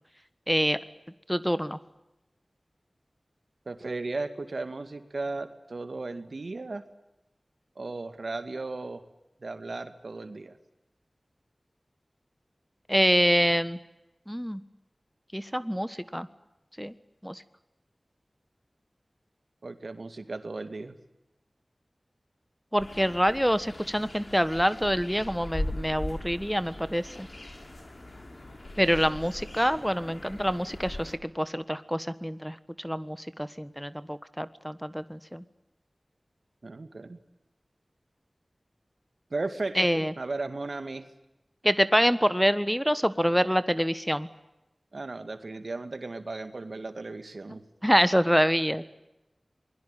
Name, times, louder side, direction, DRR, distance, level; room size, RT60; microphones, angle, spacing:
voice 1, 0.5-0.8 1.3-1.8 12.9-13.8 14.3-14.6 15.3-16.3 16.8-16.9 17.2-17.4 22.7-27.3 28.8-35.4 39.8-40.1 41.6-44.3 47.8-48.9, equal, ahead, 14 dB, 1.4 m, -26 dB
voice 2, 3.7-6.8 7.8-9.0 9.4-10.6 19.6-21.0 36.6-37.2 39.3-41.1 44.9-47.6, right 3 dB, 75° right, 10 dB, 2.2 m, -36 dB
sound 1, 22.8-31.2, left 1 dB, 50° left, 5.3 m, -40 dB
27.5 x 21.5 x 9.2 m, 0.93 s
wide cardioid pair, 40°, 0 cm